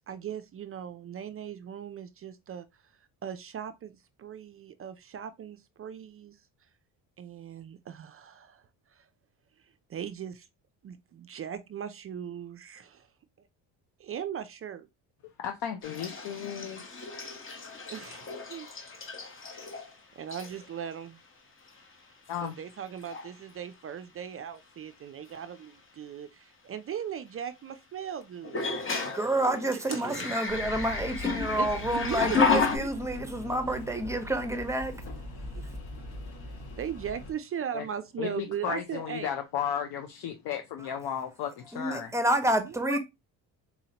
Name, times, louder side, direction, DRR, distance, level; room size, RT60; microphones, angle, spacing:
voice 1, 0.1-2.7 3.2-6.4 7.2-8.6 8.9-9.1 9.9-10.5 10.8-13.1 13.4-13.5 14.0-14.9 17.9-18.7 20.2-21.2 22.4-28.6 29.5-30.4 31.6-32.9 35.5-35.8 36.8-39.4 42.5-43.0, right 9 dB, 35° right, 0.4 m, -38 dB
voice 2, 15.4-17.1 22.3-22.5 37.7-37.8 38.2-42.1, left 9 dB, 70° left, 0.6 m, -34 dB
sound 1, 15.8-19.9 20.3-20.7 21.7-21.8 22.3-22.7 23.0-23.3 25.3-25.4 28.4-32.8, left 5 dB, 30° left, 1.0 m, -32 dB
voice 3, 29.1-34.9 41.7-43.0, right 1 dB, 5° right, 0.8 m, -29 dB
sound 2, 30.5-37.3, left 2 dB, 90° left, 1.9 m, -41 dB
4.1 x 2.7 x 2.8 m
supercardioid pair, 85°, 41 cm